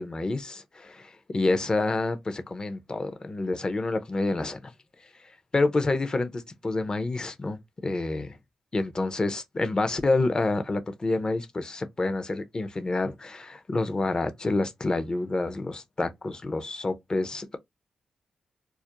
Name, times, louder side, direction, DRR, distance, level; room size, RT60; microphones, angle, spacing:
voice 1, 0.0-4.7 5.5-8.3 8.7-17.6, left 2 dB, 35° left, 0.5 m, -28 dB
2.3 x 2.1 x 2.8 m
supercardioid pair, 45°, 2 cm